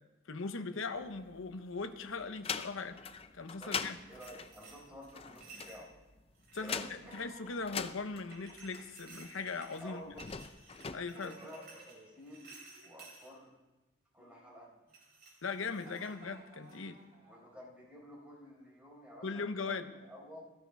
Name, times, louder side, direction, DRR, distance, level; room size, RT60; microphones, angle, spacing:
voice 1, 0.3-3.0 3.3-3.9 6.5-10.0 10.9-11.4 15.4-17.0 19.2-19.9, left 4 dB, 70° left, 7 dB, 0.9 m, -39 dB
sound 1, 0.9-1.8 2.2-9.3 10.0-11.0, left 6 dB, 25° left, 0.5 m, -42 dB
voice 2, 3.6-5.9 6.5-7.1 9.8-10.3 11.2-12.5 12.8-13.5 14.1-14.7 17.3-20.4, equal, 5° right, -5 dB, 4.7 m, -51 dB
sound 2, 3.9-5.8 6.3-7.1 8.3-13.3 14.9-16.3 16.7-16.9, right 4 dB, 50° right, 4.6 m, -56 dB
Giggle, 4.2-6.0 6.7-8.3 9.3-10.3 10.9-12.2 12.4-13.0 14.2-14.9 15.6-17.6, right 1 dB, 30° right, 6.2 m, -60 dB
17.5 x 14.5 x 3.5 m, 1.1 s
head